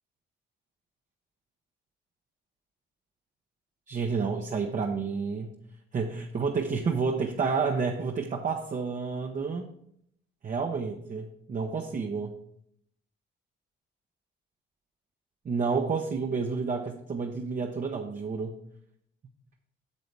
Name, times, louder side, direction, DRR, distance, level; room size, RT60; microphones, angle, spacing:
voice 1, 3.9-5.5 5.9-9.7 10.4-12.3 15.4-18.5, right 5 dB, 40° right, 3 dB, 0.8 m, -30 dB
8.3 x 7.0 x 3.4 m, 0.71 s
cardioid pair, 90°, 20 cm